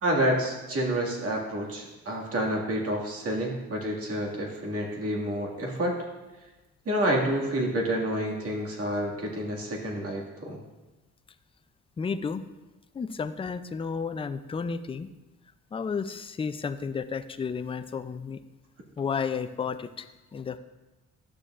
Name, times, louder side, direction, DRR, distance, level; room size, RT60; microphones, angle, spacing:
voice 1, 0.0-6.0 6.9-10.6, right 1 dB, 50° right, -1 dB, 2.0 m, -29 dB
voice 2, 12.0-12.4 12.9-15.1 15.7-18.4 19.0-20.1 20.3-20.6, left 5 dB, 20° left, 10 dB, 0.4 m, -32 dB
11.5 x 6.8 x 2.5 m, 1.1 s
cardioid pair, 90°, 30 cm